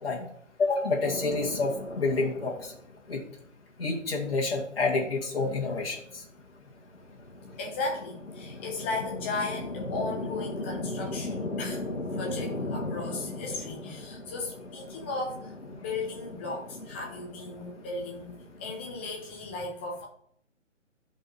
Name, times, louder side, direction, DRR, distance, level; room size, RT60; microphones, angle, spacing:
voice 1, 0.6-2.7 3.1-3.2 3.8-6.2, left 3 dB, 50° left, -2 dB, 2.1 m, -28 dB
sound 1, 1.0-19.4, left 2 dB, 85° left, 1.9 m, -39 dB
voice 2, 7.6-11.9 12.1-18.3 18.6-20.0, left 3 dB, 10° left, -1 dB, 0.9 m, -36 dB
11.5 x 5.4 x 5.8 m, 0.68 s
figure-of-eight pair, 150°, 37 cm